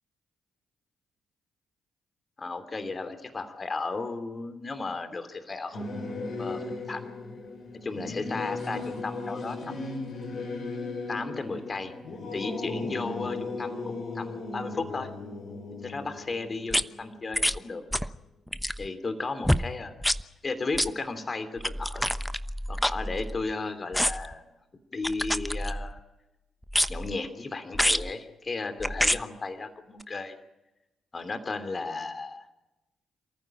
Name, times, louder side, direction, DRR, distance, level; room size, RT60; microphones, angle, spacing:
voice 1, 2.4-5.8 6.4-7.1 7.7-9.8 11.1-11.9 12.3-15.1 15.8-17.8 18.8-19.9 20.4-22.1 22.7-24.5 24.9-26.0 26.9-30.4 31.1-32.5, left 3 dB, 40° left, 10 dB, 2.9 m, -34 dB
Singing / Musical instrument, 5.7-17.6, left 3 dB, 60° left, 6.4 m, -36 dB
sound 1, 16.7-16.8 17.3-17.6 17.9-18.2 18.5-18.9 19.4-19.7 20.0-20.2 20.7-20.9 21.6-23.5 23.9-24.3 25.0-26.0 26.7-27.1 27.7-28.1 28.8-29.2 30.0-30.1, equal, 5° left, 1.0 m, -27 dB
27.5 x 15.0 x 8.9 m, 0.98 s
hypercardioid pair, 45°, 0 cm